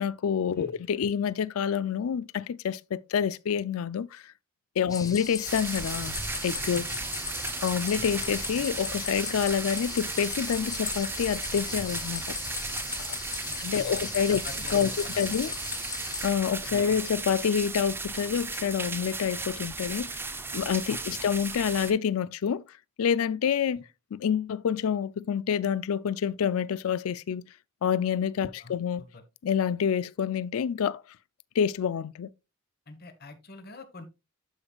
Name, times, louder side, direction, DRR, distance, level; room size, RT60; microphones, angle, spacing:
voice 1, 0.0-4.3 4.8-6.2 6.4-6.9 7.6-12.4 13.6-14.4 14.7-14.9 15.2-15.5 16.2-20.2 20.5-22.6 23.0-23.8 24.1-27.4 27.8-29.0 29.4-31.0 31.6-32.3, left 7 dB, 75° left, 0.4 m, -27 dB
voice 2, 4.9-5.2 13.4-15.5 16.7-16.9 20.9-21.2 23.7-23.8 28.4-29.2 32.9-34.1, left 3 dB, 45° left, 1.2 m, -46 dB
sound 1, 4.9-16.3, left 5 dB, 15° left, 0.9 m, -38 dB
sound 2, 5.5-21.9, right 3 dB, 10° right, 0.5 m, -35 dB
12.0 x 5.3 x 2.3 m
head